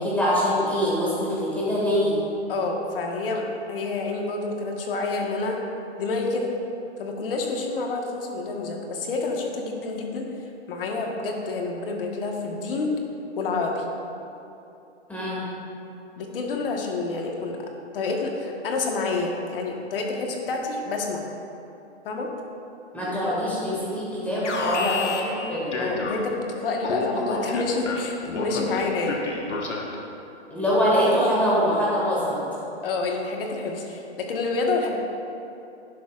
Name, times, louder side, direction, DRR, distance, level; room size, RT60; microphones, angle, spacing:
voice 1, 0.0-2.2 15.1-15.5 22.9-25.1 25.5-25.7 30.5-32.4, equal, 5° left, -8 dB, 2.1 m, -23 dB
voice 2, 2.5-5.6 6.0-6.5 7.0-10.3 10.7-13.0 13.3-13.8 16.2-21.3 22.0-22.3 24.8-25.0 25.8-29.2 32.8-35.0, left 3 dB, 55° left, 1 dB, 1.6 m, -28 dB
Alarm, 24.4-26.5 26.8-30.1, left 3 dB, 90° left, 1.4 m, -30 dB
11.5 x 10.0 x 2.5 m, 2.8 s
hypercardioid pair, 145°, 34 cm